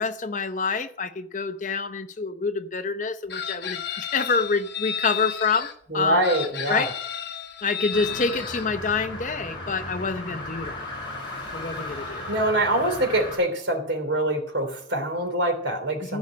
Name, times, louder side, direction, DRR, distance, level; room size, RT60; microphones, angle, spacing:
voice 1, 0.0-5.7 5.9-6.2 6.7-6.9 7.6-10.9 11.5-12.4 16.0-16.2, left 4 dB, 40° left, 10 dB, 0.7 m, -27 dB
Chicken rooster, 3.3-5.7 6.2-8.7, left 8 dB, 60° left, 1.2 m, -33 dB
voice 2, 5.9-6.9 12.3-16.2, right 1 dB, 85° right, 4 dB, 3.1 m, -24 dB
sound 1, 7.9-13.4, left 2 dB, 25° left, 5.3 m, -35 dB
15.0 x 5.3 x 8.5 m, 0.63 s
head